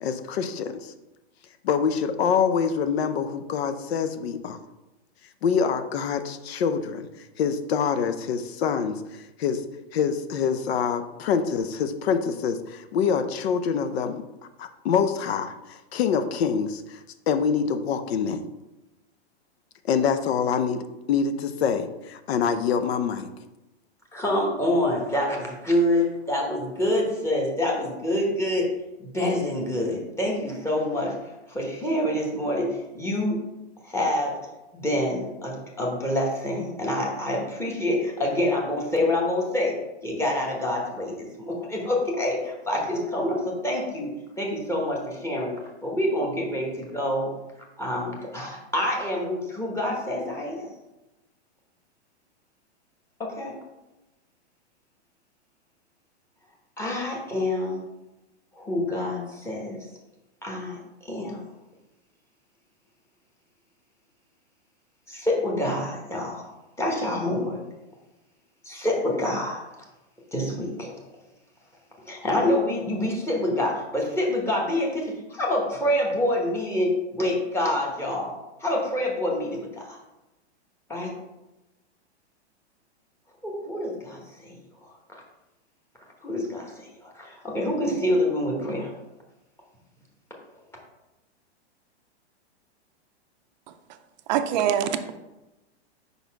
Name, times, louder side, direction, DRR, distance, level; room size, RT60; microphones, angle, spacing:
voice 1, 0.0-0.9 1.6-4.6 5.4-7.1 7.4-9.6 9.9-14.2 14.6-18.4 19.9-23.3, left 6 dB, 65° left, 10 dB, 0.7 m, -25 dB
voice 2, 24.1-28.7 29.0-31.1 31.5-33.4 33.8-34.4 34.7-44.1 44.4-45.5 45.8-47.3 47.8-50.7 53.2-53.6 56.8-57.8 58.5-59.9 60.4-61.4 65.1-66.5 66.8-67.6 68.6-69.6 70.3-70.9 72.1-78.3 78.6-80.0 80.9-81.1 83.4-84.6 84.8-84.9 86.2-88.9, left 1 dB, 10° left, -2 dB, 1.0 m, -27 dB
voice 3, 94.3-95.2, right 9 dB, 40° right, 9 dB, 0.5 m, -24 dB
5.4 x 4.1 x 4.6 m, 1.0 s
hypercardioid pair, 140°, 33 cm